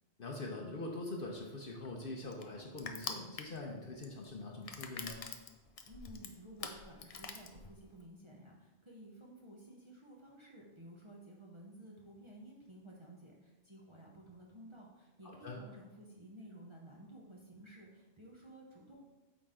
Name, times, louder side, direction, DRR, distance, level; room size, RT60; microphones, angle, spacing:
voice 1, 0.2-5.2 15.2-15.6, left 2 dB, 50° left, 1 dB, 0.9 m, -43 dB
Crushing, 1.2-8.1, left 5 dB, 75° left, 0.3 m, -46 dB
voice 2, 5.8-19.1, right 1 dB, 25° right, -3 dB, 0.8 m, -54 dB
8.7 x 3.9 x 3.7 m, 1.1 s
omnidirectional pair, 1.3 m